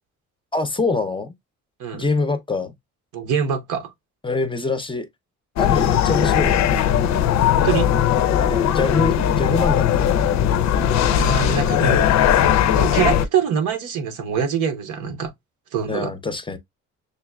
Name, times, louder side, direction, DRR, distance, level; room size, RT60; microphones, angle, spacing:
voice 1, 0.5-1.3 1.9-2.7 4.2-5.1 5.6-6.6 8.3-10.7 15.9-16.6, left 3 dB, 15° left, 0.6 m, -25 dB
voice 2, 3.1-3.9 7.5-7.9 11.1-12.0 12.7-15.3 15.7-16.1, right 7 dB, 85° right, 0.9 m, -24 dB
sound 1, 5.6-13.3, left 9 dB, 65° left, 0.5 m, -18 dB
6.5 x 2.3 x 2.2 m
cardioid pair, 90°, 30 cm